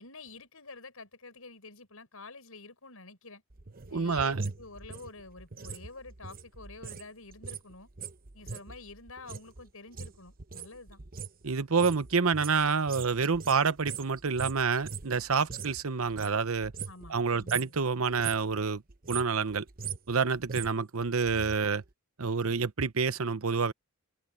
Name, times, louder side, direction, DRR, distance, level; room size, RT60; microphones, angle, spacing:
voice 1, 0.0-3.4 3.9-7.9 8.3-11.0 16.8-17.7, left 3 dB, 75° left, 6.2 m, -48 dB
sound 1, 3.5-7.1 7.3-15.8 16.1-17.2 17.4-17.8 18.1-18.5 18.9-21.5 21.8-21.9, right 5 dB, 45° right, 1.0 m, -41 dB
voice 2, 3.9-4.4 11.4-16.7 17.1-18.8 19.1-19.6 20.1-21.8 22.2-23.7, right 5 dB, 70° right, 0.9 m, -28 dB
head